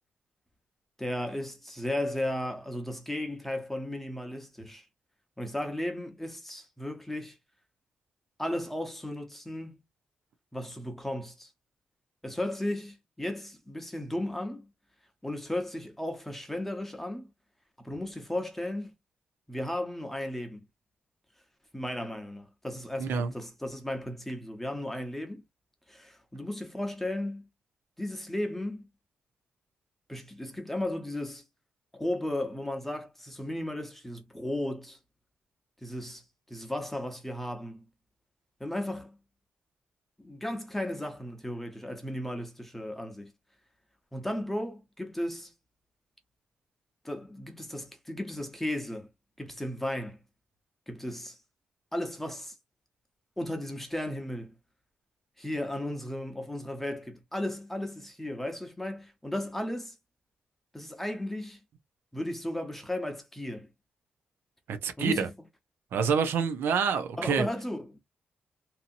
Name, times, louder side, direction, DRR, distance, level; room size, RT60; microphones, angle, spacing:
voice 1, 1.0-4.9 5.4-7.4 8.4-9.8 10.5-11.5 12.2-14.7 15.2-17.3 17.8-18.9 19.5-20.7 21.7-25.4 25.9-27.5 28.0-28.9 30.1-31.4 31.9-35.0 35.8-37.8 38.6-39.2 40.2-43.3 44.1-45.5 47.0-49.1 49.4-50.2 50.9-51.4 51.9-52.6 53.4-54.6 55.4-60.0 60.7-61.6 62.1-63.7 65.0-65.3 67.2-68.0, left 1 dB, 5° left, 0.8 m, -35 dB
voice 2, 23.0-23.3 64.7-65.3 65.9-67.5, right 6 dB, 85° right, 0.5 m, -27 dB
2.8 x 2.7 x 2.5 m
cardioid pair, 90°, 4 cm